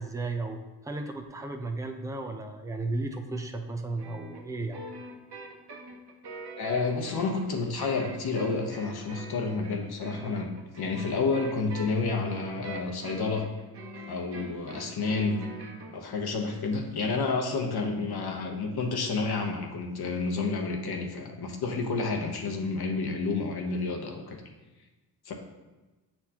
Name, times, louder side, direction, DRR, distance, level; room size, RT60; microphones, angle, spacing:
voice 1, 0.0-4.8, right 2 dB, 5° right, 4 dB, 0.6 m, -34 dB
sound 1, 4.0-15.9, right 2 dB, 65° right, 1.3 m, -43 dB
voice 2, 6.6-13.5 14.1-15.5 15.9-24.4 25.2-25.3, left 4 dB, 60° left, 2 dB, 1.1 m, -30 dB
7.7 x 4.4 x 2.9 m, 1.2 s
cardioid pair, 75°, 44 cm